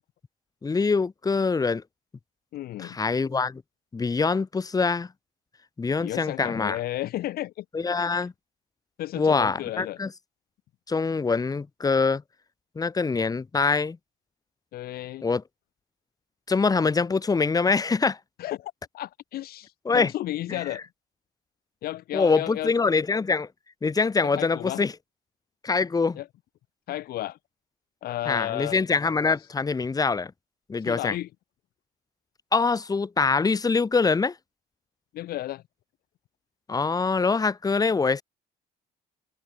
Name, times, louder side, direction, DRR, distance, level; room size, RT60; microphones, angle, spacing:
voice 1, 0.6-1.8 2.8-3.6 3.9-5.1 5.8-6.8 7.7-8.3 9.1-10.1 10.9-12.2 12.7-14.0 15.2-15.4 16.5-18.2 19.8-20.1 20.5-20.6 22.1-23.5 23.8-24.9 25.6-26.2 28.3-30.3 30.7-31.2 32.5-34.3 36.7-38.2, left 4 dB, 20° left, 1.5 m, -24 dB
voice 2, 2.5-3.0 6.0-7.6 9.0-10.0 14.7-15.2 18.4-20.8 21.8-22.7 24.2-24.8 26.2-26.3 26.9-27.4 28.0-28.8 30.8-31.3 35.1-35.6, left 14 dB, 65° left, 0.7 m, -33 dB
cardioid pair, 110°, 17 cm